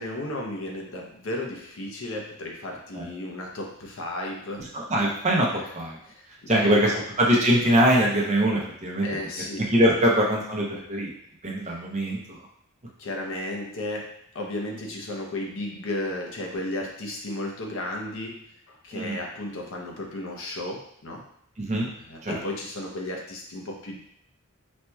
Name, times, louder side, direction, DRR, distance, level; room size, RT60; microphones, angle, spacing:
voice 1, 0.0-4.7 6.1-7.0 9.0-9.6 11.7-11.8 13.0-21.2 22.0-24.0, left 1 dB, 60° left, 0 dB, 0.7 m, -34 dB
voice 2, 4.7-5.5 5.7-6.0 6.5-6.9 7.2-9.1 9.7-11.1 11.4-12.4 18.9-19.2 21.6-21.9 22.2-22.4, right 1 dB, 30° right, -2 dB, 0.7 m, -22 dB
4.2 x 2.8 x 2.3 m, 0.72 s
head